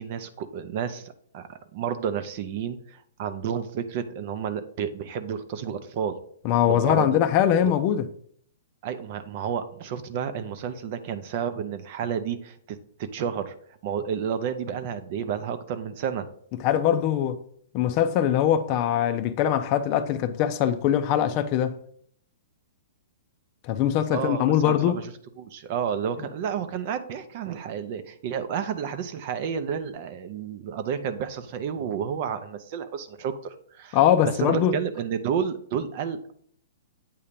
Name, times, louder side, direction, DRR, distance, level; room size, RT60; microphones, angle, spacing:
voice 1, 0.0-6.2 6.6-7.2 7.6-7.7 8.8-13.6 13.8-16.3 24.1-25.1 25.4-34.0 34.4-36.3, right 7 dB, 45° right, 0.6 m, -31 dB
voice 2, 6.4-8.1 16.6-17.4 17.7-21.8 23.6-25.0 33.9-34.8, left 10 dB, 35° left, 0.5 m, -22 dB
8.4 x 2.8 x 5.1 m
hypercardioid pair, 150°, 0 cm